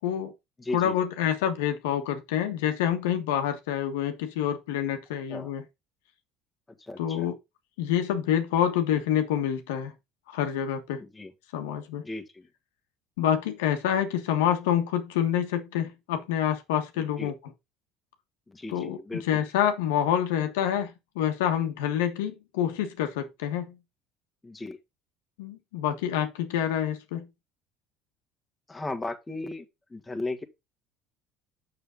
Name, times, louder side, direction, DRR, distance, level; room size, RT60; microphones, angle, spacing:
voice 1, 0.0-0.3 0.7-5.6 7.0-7.3 7.8-9.9 10.3-11.0 11.5-12.0 13.2-17.3 18.7-23.8 25.4-27.3, left 10 dB, 85° left, 1.4 m, -27 dB
voice 2, 0.6-0.9 5.3-5.5 6.7-7.3 11.0-11.3 12.0-12.5 17.0-17.3 18.5-19.4 24.4-24.8 28.7-29.7 29.9-30.4, left 2 dB, 15° left, 1.8 m, -36 dB
6.8 x 6.6 x 3.8 m
hypercardioid pair, 75°, 0 cm